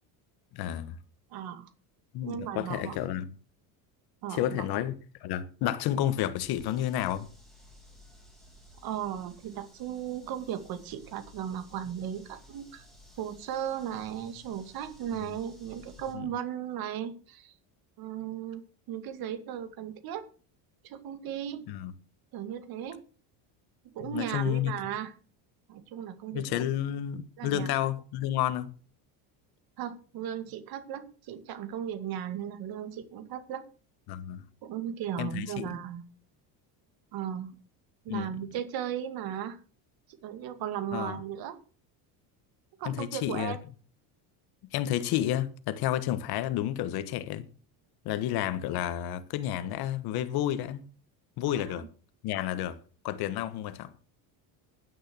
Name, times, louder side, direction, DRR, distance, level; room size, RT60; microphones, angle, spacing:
voice 1, 0.5-1.0 2.1-3.3 4.3-4.9 5.2-7.3 16.1-16.2 21.7-21.9 24.1-24.7 26.3-28.7 34.1-34.4 35.2-35.7 38.1-38.3 40.9-41.2 42.8-43.6 44.7-47.5 48.0-50.8 51.4-51.8 52.2-52.8 53.0-53.9, left 12 dB, 60° left, 1.5 m, -30 dB
voice 2, 1.3-1.7 2.2-3.0 4.2-4.6 8.8-12.9 13.2-17.5 18.0-20.3 20.8-21.8 22.3-23.0 23.9-25.1 25.7-26.6 27.4-27.7 29.8-33.6 34.6-36.0 37.1-37.6 38.0-39.6 40.1-41.6 42.8-43.6 51.5-51.8, right 9 dB, 55° right, 2.3 m, -36 dB
sound 1, 6.4-16.1, equal, ahead, 6.8 m, -55 dB
11.0 x 10.0 x 6.3 m
cardioid pair, 155°, 43 cm